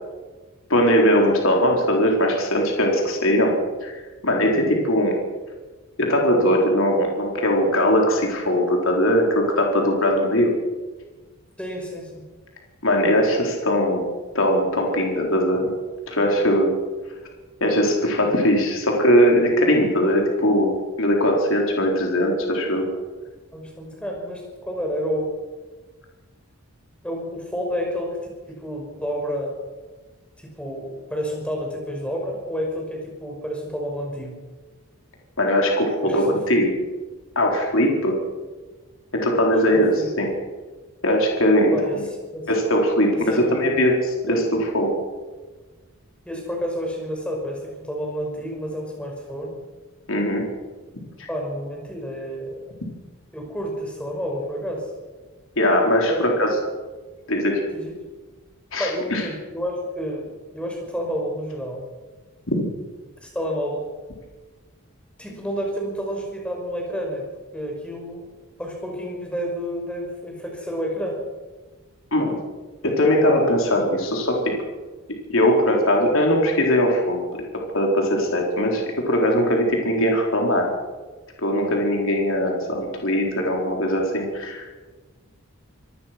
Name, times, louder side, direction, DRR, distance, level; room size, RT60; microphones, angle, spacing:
voice 1, 0.7-3.5 3.8-5.2 6.0-10.5 12.8-14.0 14.3-15.7 16.1-16.7 17.6-20.7 21.0-22.9 35.4-36.7 37.4-38.2 39.1-40.3 41.0-41.8 42.5-44.4 44.7-45.0 50.1-50.4 51.2-51.3 55.6-56.5 57.3-57.6 58.7-59.2 62.5-62.6 72.1-72.4 72.8-74.4 75.3-80.7 81.4-84.7, equal, 65° left, 0 dB, 4.4 m, -20 dB
voice 2, 11.6-12.2 23.5-25.3 27.0-28.2 28.5-29.6 30.4-34.4 36.0-36.6 39.7-40.1 41.7-42.5 43.3-43.8 44.3-44.4 46.3-49.6 51.3-52.7 53.3-54.9 56.1-56.2 57.7-57.9 58.8-61.8 63.2-63.8 65.2-67.3 67.5-68.3 68.6-71.2, equal, 5° left, 0 dB, 5.7 m, -30 dB
26.5 x 19.0 x 6.1 m, 1.3 s
head